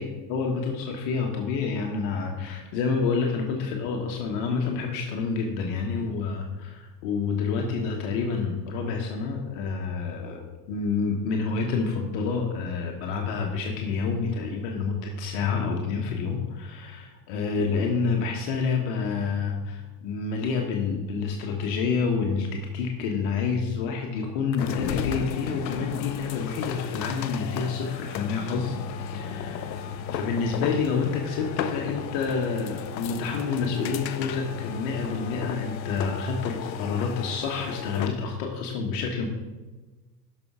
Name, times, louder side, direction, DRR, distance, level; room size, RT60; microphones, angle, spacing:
voice 1, 0.3-39.3, left 5 dB, 55° left, 2 dB, 1.4 m, -28 dB
sound 1, 24.5-38.3, left 7 dB, 80° left, 0.6 m, -34 dB
12.5 x 5.6 x 4.8 m, 1.2 s
figure-of-eight pair, 75°, 50 cm